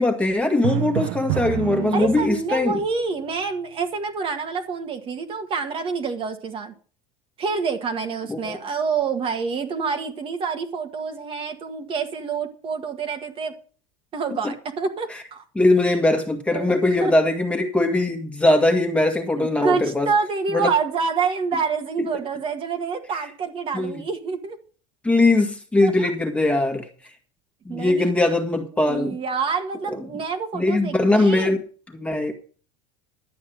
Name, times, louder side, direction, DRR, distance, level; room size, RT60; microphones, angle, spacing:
voice 1, 0.0-2.8 8.3-8.6 14.3-14.5 15.1-15.2 15.5-20.1 20.5-20.7 22.0-22.1 23.7-24.0 25.0-26.9 27.7-29.2 30.5-32.3, left 2 dB, 5° left, 4 dB, 1.9 m, -21 dB
Drum, 0.6-2.7, right 17 dB, 65° right, 0.7 m, -27 dB
voice 2, 1.9-6.7 7.4-13.5 14.1-15.4 16.5-17.1 19.4-24.6 25.8-26.1 27.7-28.1 28.8-31.6, right 5 dB, 35° right, 5 dB, 1.7 m, -27 dB
12.0 x 8.4 x 6.3 m, 0.40 s
supercardioid pair, 140°, 17 cm